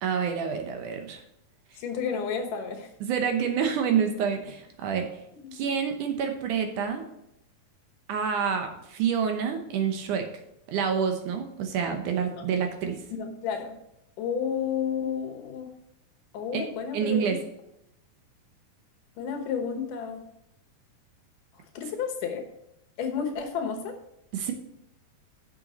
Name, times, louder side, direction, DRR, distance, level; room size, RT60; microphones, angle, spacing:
voice 1, 0.0-1.2 3.0-5.1 5.5-7.0 8.1-10.3 10.7-13.0 16.5-17.4 24.3-24.5, right 7 dB, 70° right, 5 dB, 2.3 m, -28 dB
voice 2, 1.8-2.9 5.4-5.6 13.1-13.7 14.2-15.7 16.3-17.3 19.2-20.2 21.8-22.4 23.0-24.0, left 6 dB, 70° left, 5 dB, 2.6 m, -31 dB
7.0 x 6.9 x 5.2 m, 0.81 s
omnidirectional pair, 4.0 m